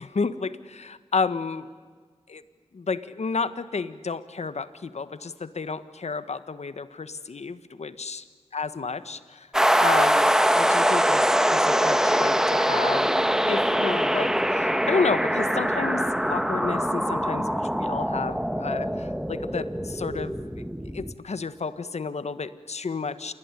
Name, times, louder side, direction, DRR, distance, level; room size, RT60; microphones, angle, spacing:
voice 1, 0.0-1.7 2.3-2.4 2.7-8.3 8.5-9.5 9.8-13.1 13.5-20.4 20.9-23.3, left 4 dB, 75° left, 13 dB, 1.5 m, -31 dB
sound 1, 9.5-21.1, equal, 5° right, 1.8 m, -23 dB
28.0 x 21.0 x 9.9 m, 1.5 s
cardioid pair, 40°, 11 cm